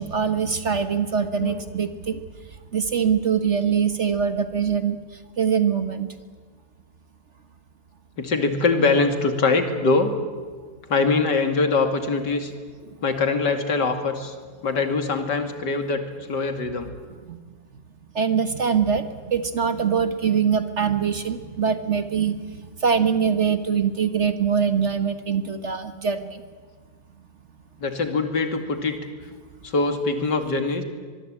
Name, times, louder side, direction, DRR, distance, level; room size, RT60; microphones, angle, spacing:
voice 1, 0.0-2.2 2.7-5.0 5.4-6.1 17.3-17.4 18.1-22.4 22.8-26.4, right 7 dB, 45° right, 10 dB, 1.5 m, -23 dB
voice 2, 8.2-10.1 10.9-12.5 13.0-14.3 14.6-16.0 16.3-16.9 27.8-29.0 29.6-30.8, left 3 dB, 70° left, 7 dB, 2.9 m, -23 dB
24.0 x 22.5 x 8.8 m, 1.5 s
omnidirectional pair, 1.9 m